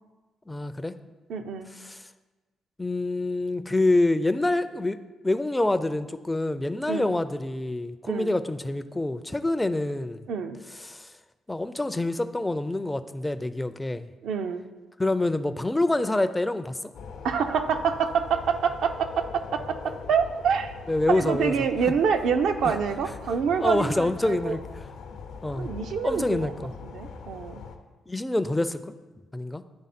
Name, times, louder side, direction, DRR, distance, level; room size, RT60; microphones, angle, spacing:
voice 1, 0.5-0.9 1.8-2.0 2.8-5.0 5.2-10.2 10.8-11.1 11.5-14.1 15.0-16.9 20.9-21.5 22.7-22.8 23.6-24.6 25.4-25.7 26.0-26.7 28.1-28.9 29.3-29.6, left 2 dB, 10° left, 11 dB, 0.3 m, -26 dB
voice 2, 1.3-1.7 6.9-7.1 8.1-8.3 10.3-10.6 14.2-14.6 17.2-20.7 21.1-24.6 25.5-26.5 26.8-27.6, right 6 dB, 75° right, 7 dB, 0.5 m, -26 dB
sound 1, 16.9-27.8, left 5 dB, 80° left, 0.6 m, -41 dB
9.6 x 3.4 x 4.2 m, 1.2 s
cardioid pair, 90°, 0 cm